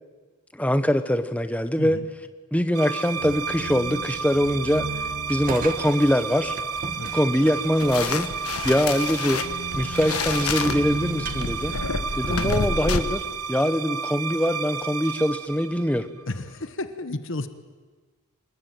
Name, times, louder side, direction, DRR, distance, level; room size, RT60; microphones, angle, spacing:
voice 1, 0.6-2.0 2.5-5.0 5.3-6.6 7.1-8.3 8.6-9.4 9.8-11.8 12.1-16.1, equal, 5° left, 10 dB, 1.0 m, -23 dB
sound 1, 2.7-16.4, right 5 dB, 85° right, 1.1 m, -32 dB
sound 2, 5.3-12.5, right 3 dB, 40° right, 1.4 m, -39 dB
sound 3, 7.8-13.0, left 4 dB, 80° left, 1.5 m, -28 dB
voice 2, 16.3-17.5, left 2 dB, 55° left, 10 dB, 1.2 m, -32 dB
26.5 x 21.0 x 9.2 m, 1.4 s
head